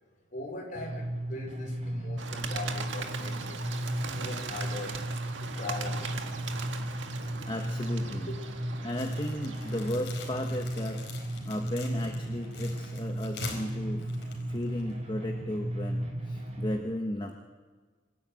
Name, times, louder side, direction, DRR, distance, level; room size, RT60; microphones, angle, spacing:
voice 1, 0.3-3.6 4.1-5.0 5.4-6.2 8.3-8.7, left 3 dB, 45° left, 1 dB, 5.2 m, -41 dB
sound 1, 0.7-16.8, right 1 dB, 35° right, 4.6 m, -35 dB
Bird, 2.2-9.9, right 5 dB, 90° right, 1.7 m, -40 dB
voice 2, 7.4-8.3 8.8-11.0 11.4-17.3, left 1 dB, 25° left, 3 dB, 1.3 m, -35 dB
sound 2, 8.9-15.0, left 4 dB, 65° left, 4.5 m, -45 dB
25.5 x 13.0 x 9.2 m, 1.4 s
head